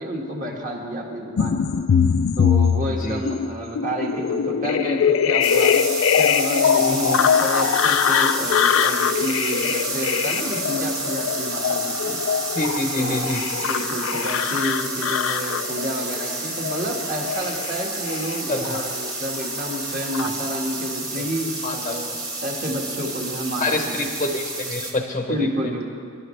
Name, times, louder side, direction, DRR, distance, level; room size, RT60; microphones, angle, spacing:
voice 1, 0.0-1.6 2.4-5.9 6.2-12.2 13.0-22.2 22.4-24.1 25.3-25.9, equal, 35° right, 0 dB, 1.8 m, -30 dB
sound 1, 1.4-19.1 19.4-20.3, left 7 dB, 65° left, 0.4 m, -22 dB
sound 2, 5.4-24.9, right 2 dB, 15° right, 1.4 m, -30 dB
voice 2, 6.7-7.2 12.6-13.4 18.5-18.8 21.6-21.9 23.6-25.3, left 2 dB, 30° left, 4 dB, 0.8 m, -26 dB
24.0 x 11.5 x 3.3 m, 2.4 s
head